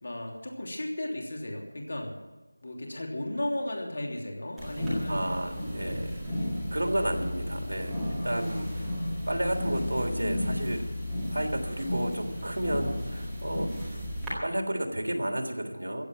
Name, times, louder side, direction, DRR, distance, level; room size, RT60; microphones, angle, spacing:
voice 1, 0.0-2.1 2.6-5.3 5.8-6.2 8.3-8.6, left 1 dB, 45° left, 0 dB, 3.2 m, -35 dB
sound 1, 4.6-14.3, left 1 dB, ahead, 1.8 m, -33 dB
voice 2, 5.1-6.0 6.7-8.9 9.3-10.9 11.3-13.7 14.4-16.1, right 1 dB, 85° right, 2 dB, 3.3 m, -31 dB
15.0 x 8.3 x 9.2 m, 1.1 s
figure-of-eight pair, 180°, 0 cm